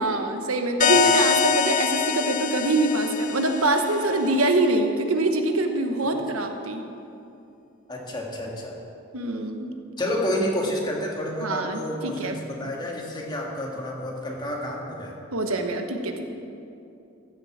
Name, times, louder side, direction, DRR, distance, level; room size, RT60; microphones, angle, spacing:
voice 1, 0.0-6.8 9.1-9.8 11.4-12.4 15.3-16.3, right 2 dB, 90° right, 5 dB, 1.2 m, -24 dB
sound 1, 0.8-4.2, left 7 dB, 35° left, 0.4 m, -24 dB
voice 2, 7.9-8.8 10.0-15.1, left 1 dB, 20° left, -1 dB, 1.8 m, -30 dB
14.5 x 7.7 x 7.3 m, 2.7 s
head